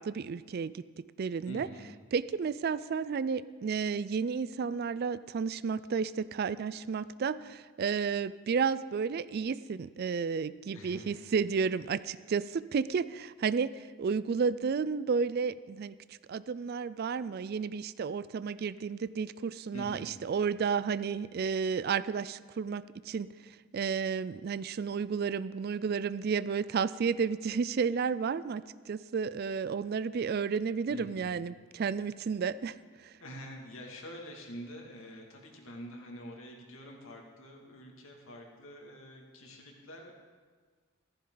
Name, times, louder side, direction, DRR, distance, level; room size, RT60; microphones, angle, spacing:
voice 1, 0.0-1.7 2.1-15.9 16.3-32.8 33.0-33.1, right 6 dB, 45° right, 17 dB, 0.3 m, -32 dB
voice 2, 1.5-1.9 10.7-11.3 19.7-20.2 30.9-31.4 33.2-40.1, equal, 70° left, 0 dB, 2.3 m, -46 dB
14.5 x 14.5 x 3.9 m, 1.5 s
head